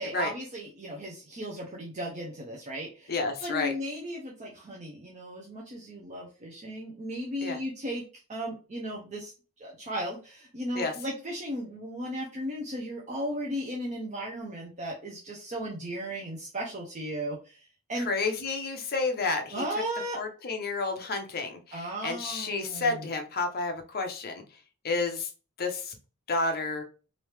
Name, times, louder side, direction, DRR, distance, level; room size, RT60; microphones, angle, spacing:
voice 1, 0.0-3.1 3.4-8.0 8.3-9.3 9.6-18.1 19.5-20.2 21.7-23.1, equal, 30° right, -2 dB, 0.6 m, -36 dB
voice 2, 3.1-3.7 7.4-7.6 10.7-10.9 18.0-19.6 20.2-24.4 24.8-25.3 25.6-26.0 26.3-26.8, left 3 dB, 45° left, 5 dB, 0.6 m, -30 dB
3.0 x 2.7 x 3.2 m, 0.34 s
head